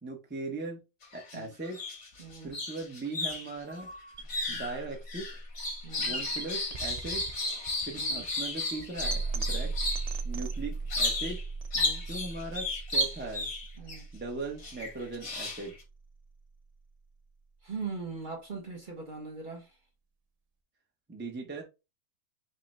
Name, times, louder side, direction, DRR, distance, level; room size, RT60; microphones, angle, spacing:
voice 1, 0.0-0.8 1.1-1.8 2.4-3.9 4.2-5.4 5.9-7.3 7.8-9.7 10.2-11.4 11.8-13.5 14.1-15.8 21.1-21.6, right 3 dB, 10° right, 0.6 m, -39 dB
sound 1, 1.0-1.4 1.7-10.1 10.9-11.4 11.7-14.0 14.6-15.8, left 2 dB, 80° left, 2.0 m, -33 dB
voice 2, 2.2-2.5 4.5-4.6 5.8-6.2 8.0-8.2 11.7-12.0 13.8-14.0 17.6-19.8, right 4 dB, 40° right, 0.9 m, -40 dB
sound 2, 4.1-16.2, right 4 dB, 70° right, 0.3 m, -38 dB
5.4 x 2.2 x 4.1 m
omnidirectional pair, 1.6 m